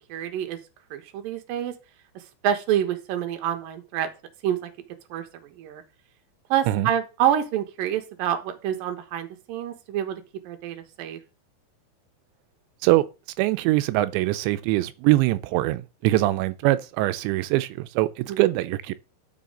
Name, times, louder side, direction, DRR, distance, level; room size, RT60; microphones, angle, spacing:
voice 1, 0.1-0.6 0.9-1.7 2.4-4.1 4.4-4.7 5.1-5.8 6.5-11.2 18.3-18.5, right 10 dB, 65° right, 2.7 m, -27 dB
voice 2, 13.4-18.9, right 17 dB, 90° right, 3.0 m, -23 dB
12.5 x 6.4 x 3.9 m
omnidirectional pair, 5.1 m